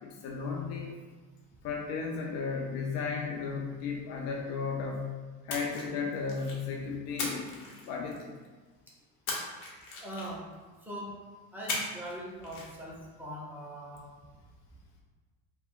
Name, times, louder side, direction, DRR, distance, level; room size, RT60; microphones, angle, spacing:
voice 1, 0.0-0.9 1.6-8.4, left 5 dB, 45° left, 0 dB, 0.4 m, -35 dB
Splash splatter, 5.5-6.7 7.2-8.4 9.3-10.5 11.7-12.2 12.4-12.7, left 2 dB, 85° left, 0.8 m, -37 dB
voice 2, 10.0-10.4 10.9-11.1 11.5-14.0, equal, 5° right, -5 dB, 0.6 m, -41 dB
2.2 x 2.1 x 3.6 m, 1.3 s
supercardioid pair, 105°, 40 cm